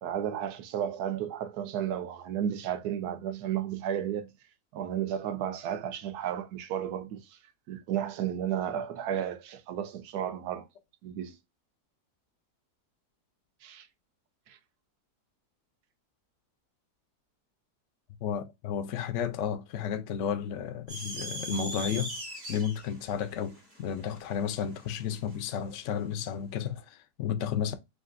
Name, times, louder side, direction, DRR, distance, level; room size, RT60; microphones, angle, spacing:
voice 1, 0.0-4.3 4.7-7.4 7.7-10.7 11.0-11.4 13.6-13.9 14.5-14.6, right 9 dB, 75° right, 1.2 m, -33 dB
voice 2, 18.2-22.2 22.5-27.7, left 8 dB, 70° left, 0.7 m, -32 dB
sound 1, 20.9-25.4, right 1 dB, 90° right, 2.9 m, -40 dB
6.5 x 2.4 x 2.5 m
omnidirectional pair, 1.7 m